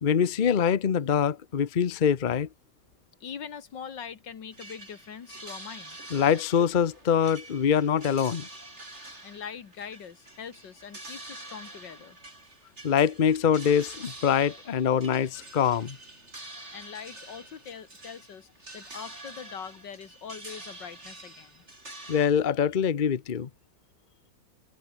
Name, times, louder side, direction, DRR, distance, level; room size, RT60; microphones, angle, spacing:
voice 1, 0.0-2.5 6.1-8.5 12.8-16.0 22.1-23.5, left 8 dB, 40° left, 0.7 m, -24 dB
voice 2, 3.2-6.0 9.2-12.2 16.7-18.5 18.7-21.6, left 7 dB, 80° left, 2.4 m, -42 dB
sound 1, 4.5-22.3, right 2 dB, 35° right, 5.7 m, -46 dB
omnidirectional pair, 1.9 m